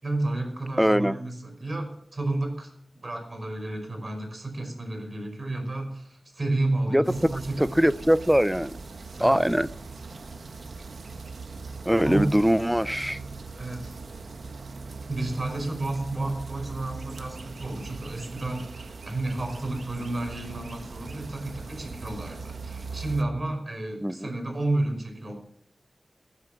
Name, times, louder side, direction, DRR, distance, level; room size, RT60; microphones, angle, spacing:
voice 1, 0.0-2.7 3.0-7.6 9.2-9.4 12.1-12.3 13.6-14.0 15.1-25.3, right 2 dB, 45° right, 5.3 m, -31 dB
voice 2, 0.8-1.2 6.9-8.8 9.2-9.7 11.8-13.2 24.0-24.3, equal, 5° right, 0.5 m, -22 dB
sound 1, 7.0-23.2, right 4 dB, 75° right, 1.3 m, -40 dB
17.5 x 9.6 x 5.9 m
cardioid pair, 55°, 0 cm